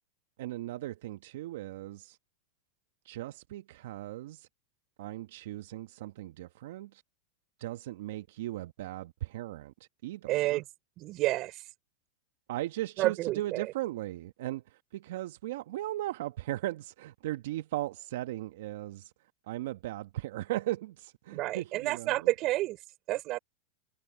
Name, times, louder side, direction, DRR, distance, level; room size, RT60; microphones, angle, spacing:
voice 1, 0.4-2.2 3.0-4.5 5.0-7.0 7.6-10.6 12.5-19.1 19.5-22.3, right 15 dB, 70° right, 1.1 m, -37 dB
voice 2, 10.3-10.6 11.0-11.6 13.0-13.7 21.3-22.8 23.1-23.4, right 17 dB, 45° right, 4.2 m, -29 dB
hypercardioid pair, 110°, 0 cm